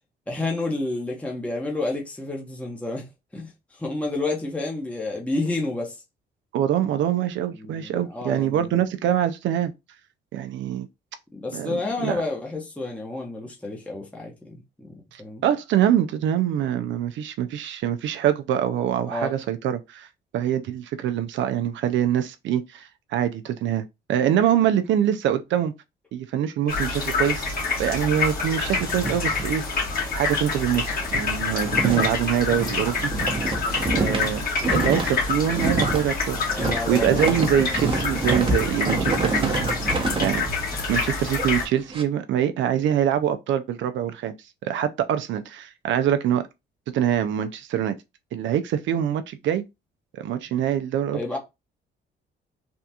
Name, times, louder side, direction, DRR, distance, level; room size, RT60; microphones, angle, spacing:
voice 1, 0.3-3.1 3.3-6.0 7.5-8.8 11.3-15.4 19.0-19.3 33.9-34.2 36.5-37.2 37.6-37.8 51.1-51.4, left 2 dB, 5° left, 0.9 m, -30 dB
voice 2, 6.5-9.7 10.3-10.9 11.5-12.2 15.1-20.1 20.3-25.7 26.1-29.6 30.1-33.1 33.9-34.4 34.7-40.5 40.9-44.3 44.6-46.4 46.9-48.0 48.3-49.6 50.1-51.2, right 10 dB, 75° right, 0.4 m, -24 dB
sound 1, 26.7-41.6, left 4 dB, 50° left, 1.6 m, -27 dB
sound 2, 27.8-30.1 30.4-30.5 30.9-42.0, right 3 dB, 25° right, 0.8 m, -28 dB
3.4 x 2.4 x 2.7 m
cardioid pair, 90°, 20 cm